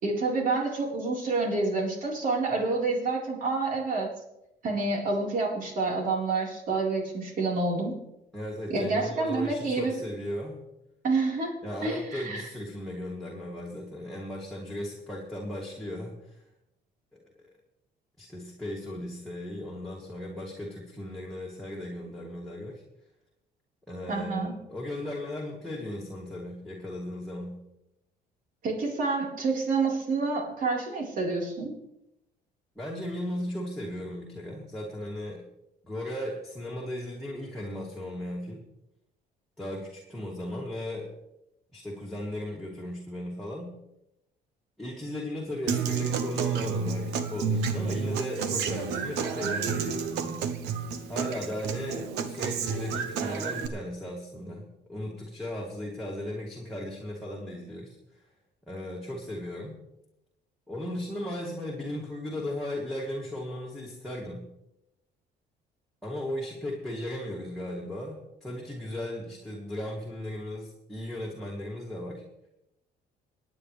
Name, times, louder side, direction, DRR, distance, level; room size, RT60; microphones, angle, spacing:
voice 1, 0.0-4.1 4.6-8.0 8.7-10.0 11.0-11.6 11.8-12.5 24.1-24.5 28.6-31.8, right 3 dB, 55° right, -1 dB, 4.4 m, -28 dB
voice 2, 8.3-10.6 11.6-16.4 17.1-17.5 18.2-22.8 23.9-27.6 32.8-35.5 35.8-38.6 39.6-41.1 41.7-43.7 44.8-50.4 51.1-58.0 58.7-59.8 60.7-64.5 66.0-72.2, left 1 dB, ahead, -3 dB, 2.6 m, -36 dB
Human voice / Acoustic guitar, 45.7-53.7, right 6 dB, 90° right, 1.2 m, -30 dB
26.5 x 9.4 x 3.4 m, 0.86 s
cardioid pair, 110°, 17 cm